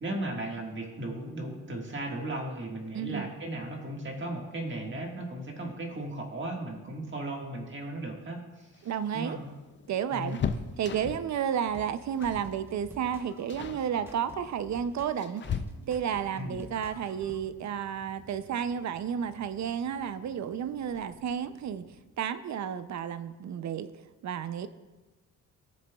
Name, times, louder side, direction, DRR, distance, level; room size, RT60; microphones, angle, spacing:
voice 1, 0.0-9.4 10.1-10.5 16.3-16.7, right 1 dB, 35° right, 0 dB, 1.7 m, -36 dB
voice 2, 2.9-3.3 8.8-9.4 9.9-10.4 10.8-15.4 15.9-21.9 22.2-23.9 24.2-24.7, right 8 dB, 55° right, 12 dB, 0.5 m, -32 dB
sound 1, 8.7-11.4 12.2-12.5 12.8-13.1 13.5-13.9 14.7-16.2 17.9-18.0 18.4-18.5 19.7-20.1 20.4-20.5 20.8-21.0, left 7 dB, 35° left, 0.4 m, -37 dB
sound 2, 11.5-17.4, right 1 dB, 5° right, 0.9 m, -50 dB
sound 3, 15.6-22.0, right 4 dB, 85° right, 1.0 m, -55 dB
17.0 x 7.3 x 2.3 m, 1.1 s
cardioid pair, 125°, 33 cm